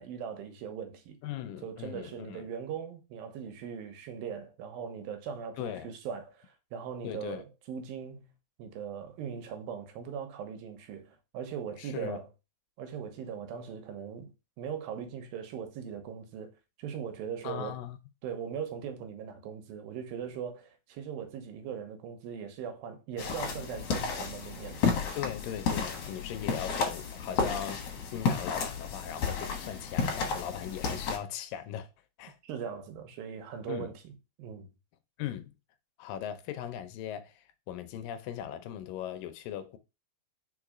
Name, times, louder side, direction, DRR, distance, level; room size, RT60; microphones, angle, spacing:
voice 1, 0.0-1.2 1.6-8.3 8.6-12.3 12.8-14.3 14.6-16.5 16.8-17.8 18.2-24.9 32.4-34.1 34.4-34.7, right 7 dB, 85° right, 2.9 m, -40 dB
voice 2, 1.2-2.5 5.6-5.9 7.0-7.4 11.8-12.2 17.4-18.0 25.2-31.9 32.2-32.4 33.7-33.9 35.2-35.5 36.0-39.8, left 10 dB, 80° left, 2.4 m, -39 dB
sound 1, 23.2-31.2, left 5 dB, 55° left, 2.0 m, -32 dB
4.9 x 4.9 x 4.9 m
omnidirectional pair, 4.1 m